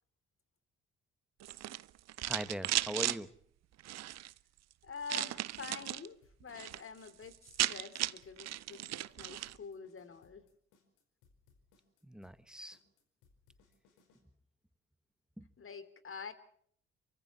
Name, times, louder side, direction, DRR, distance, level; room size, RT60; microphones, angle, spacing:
sound 1, 1.4-3.2 3.8-4.3 5.1-6.1 6.4-6.8 7.1-7.2 7.3-9.6, right 14 dB, 55° right, 0.8 m, -36 dB
voice 1, 2.2-3.4 12.0-12.8 15.4-15.5, equal, ahead, 14 dB, 1.7 m, -41 dB
voice 2, 4.8-10.4 15.6-16.3, left 5 dB, 40° left, 12 dB, 3.3 m, -47 dB
sound 2, 6.2-14.2, left 4 dB, 70° left, 5.0 m, -68 dB
29.0 x 24.0 x 4.3 m, 0.64 s
hypercardioid pair, 45°, 31 cm